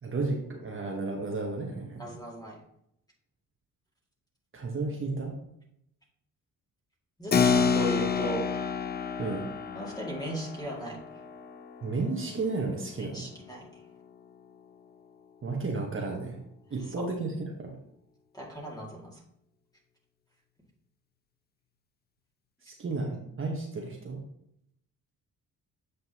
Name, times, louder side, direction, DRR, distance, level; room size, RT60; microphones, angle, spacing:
voice 1, 0.0-2.1 4.5-5.3 9.2-9.4 11.8-13.2 15.4-16.4 16.7-17.7 22.6-24.2, right 3 dB, 35° right, 0 dB, 1.3 m, -33 dB
voice 2, 2.0-2.6 7.2-8.5 9.7-11.0 13.0-13.7 17.0-17.1 18.3-19.1, right 1 dB, 10° left, -3 dB, 2.3 m, -37 dB
Keyboard (musical), 7.3-13.3, left 6 dB, 30° left, 0.6 m, -30 dB
8.0 x 5.2 x 3.0 m, 0.75 s
cardioid pair, 80°, 35 cm